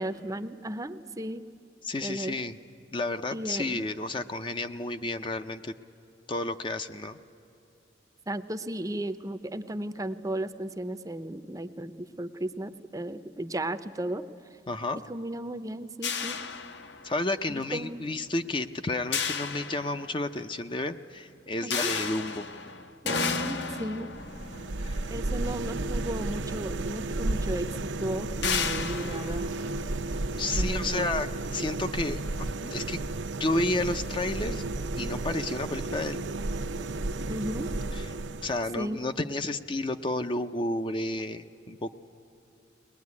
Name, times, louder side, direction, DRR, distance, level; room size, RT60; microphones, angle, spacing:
voice 1, 0.0-1.4 2.0-2.4 3.3-3.8 8.3-14.2 15.1-16.4 17.5-18.1 21.6-21.9 23.0-24.1 25.1-29.5 30.5-31.1 37.3-37.7 38.8-39.0, right 1 dB, 20° right, 11 dB, 0.6 m, -35 dB
voice 2, 1.8-2.6 2.9-5.7 6.3-7.2 14.7-15.0 17.0-22.4 24.8-25.0 30.4-33.0 33.4-34.6 35.0-36.2 38.4-41.9, left 2 dB, 25° left, 8 dB, 0.5 m, -31 dB
sound 1, 16.0-17.4 19.1-20.4 21.7-26.1 27.1-27.2 27.6-27.7 28.4-30.4, left 5 dB, 65° left, 1.0 m, -33 dB
sound 2, 24.1-38.8, right 2 dB, 80° right, 0.7 m, -33 dB
21.5 x 20.0 x 9.6 m, 2.9 s
head